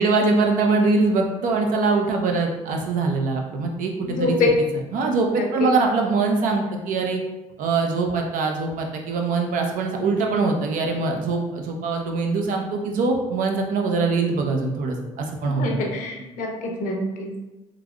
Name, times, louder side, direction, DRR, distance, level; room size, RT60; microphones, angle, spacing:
voice 1, 0.0-4.4 4.9-7.2 7.6-15.6, right 3 dB, 70° right, 2 dB, 0.5 m, -23 dB
voice 2, 4.0-4.5 5.3-5.7 15.4-17.3, left 3 dB, 65° left, 0 dB, 0.7 m, -25 dB
3.1 x 2.4 x 2.2 m, 1.1 s
supercardioid pair, 70°, 15 cm